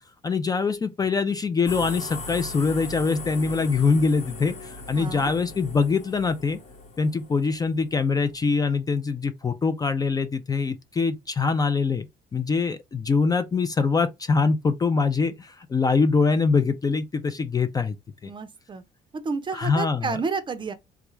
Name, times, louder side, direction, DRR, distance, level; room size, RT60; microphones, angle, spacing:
voice 1, 0.2-6.6 7.0-12.1 12.3-18.0 18.2-18.3 19.5-20.1, left 4 dB, 20° left, 0.4 m, -23 dB
sound 1, 1.7-8.5, left 2 dB, 45° left, 1.0 m, -39 dB
voice 2, 4.9-5.3 18.2-18.8 19.2-20.7, right 4 dB, 30° right, 0.5 m, -30 dB
3.5 x 2.4 x 3.0 m
cardioid pair, 110°, 17 cm